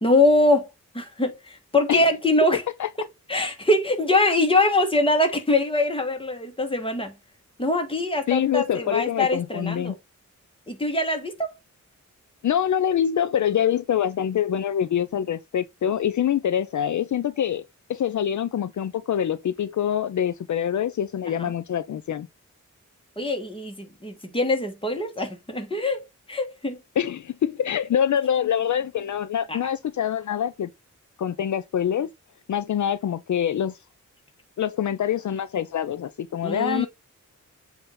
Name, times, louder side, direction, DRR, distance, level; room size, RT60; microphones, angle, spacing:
voice 1, 0.0-0.7 0.9-2.6 3.3-7.1 7.6-9.9 10.7-11.5 21.4-21.5 23.2-26.8 29.5-29.6 36.4-36.9, left 2 dB, 15° left, 1.5 m, -23 dB
voice 2, 8.3-10.0 12.4-17.6 17.9-22.3 27.0-30.7 31.2-32.1 32.5-33.8 34.6-36.9, left 9 dB, 65° left, 0.5 m, -25 dB
7.8 x 2.8 x 5.2 m
wide cardioid pair, 140°, 31 cm